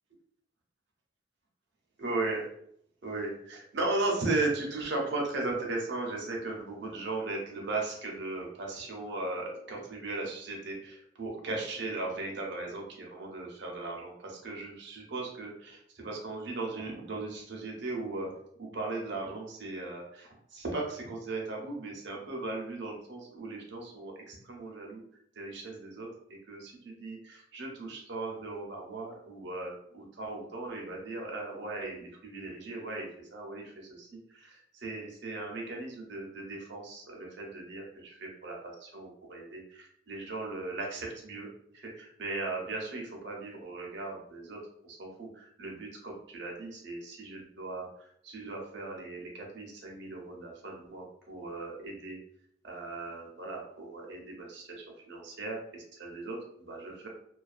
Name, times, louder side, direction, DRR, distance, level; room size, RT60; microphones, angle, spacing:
voice 1, 2.0-2.5 3.0-18.3 18.6-25.0 25.3-41.5 41.7-52.2 52.6-57.1, right 2 dB, 60° right, -1 dB, 0.6 m, -37 dB
2.3 x 2.2 x 2.4 m, 0.68 s
head